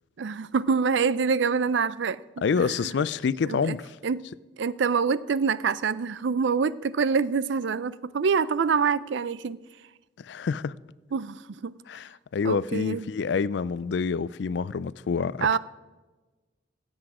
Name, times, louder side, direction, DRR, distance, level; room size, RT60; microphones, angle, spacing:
voice 1, 0.2-2.2 2.6-2.7 3.5-3.7 4.0-4.3 4.6-9.6 11.1-11.7 12.4-13.1 15.4-15.6, right 5 dB, 70° right, 0.4 m, -25 dB
voice 2, 2.4-3.9 10.2-10.7 11.9-15.6, left 5 dB, 65° left, 0.4 m, -27 dB
16.0 x 8.0 x 4.8 m
head